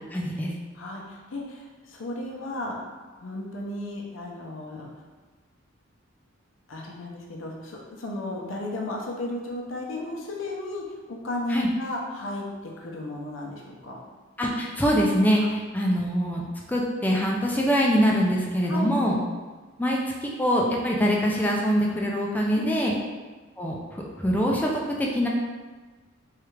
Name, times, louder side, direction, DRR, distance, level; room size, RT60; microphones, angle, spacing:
voice 1, 0.1-0.5 11.5-11.7 14.4-16.4 16.7-19.2 19.8-22.9 23.6-24.7 25.0-25.3, equal, 10° left, -2 dB, 0.3 m, -24 dB
voice 2, 0.7-2.8 3.2-4.9 6.7-14.0 18.7-19.0 22.5-23.0, left 1 dB, 70° left, -1 dB, 0.6 m, -34 dB
3.2 x 2.4 x 3.1 m, 1.3 s
head